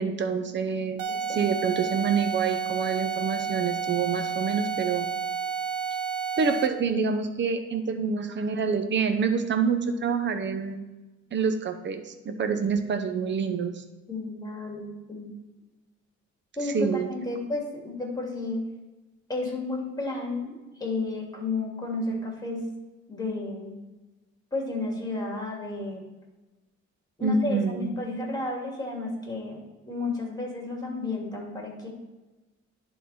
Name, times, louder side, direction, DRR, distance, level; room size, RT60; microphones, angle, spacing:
voice 1, 0.0-5.1 6.4-10.8 11.3-13.8 16.6-17.1 27.2-27.9, right 5 dB, 40° right, 8 dB, 0.8 m, -27 dB
sound 1, 1.0-6.9, right 6 dB, 80° right, 0.8 m, -31 dB
voice 2, 14.1-15.3 16.6-18.6 19.3-22.6 23.1-23.8 24.5-26.1 27.2-31.9, left 2 dB, 15° left, -1 dB, 2.4 m, -32 dB
11.0 x 3.9 x 4.2 m, 1.1 s
cardioid pair, 90°, 30 cm